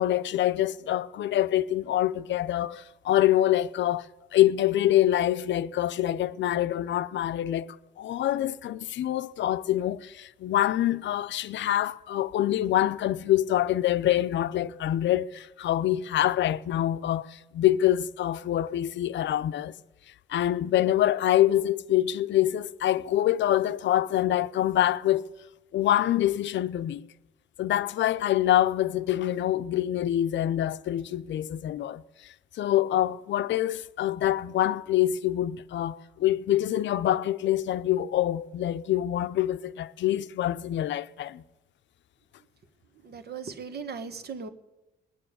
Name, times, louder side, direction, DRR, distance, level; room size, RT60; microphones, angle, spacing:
voice 1, 0.0-4.1 4.3-19.7 20.3-25.3 25.7-27.1 27.6-41.4, left 12 dB, 65° left, 0.6 m, -25 dB
voice 2, 42.9-44.5, right 5 dB, 55° right, 1.5 m, -38 dB
19.5 x 7.0 x 10.0 m
cardioid pair, 90°, 20 cm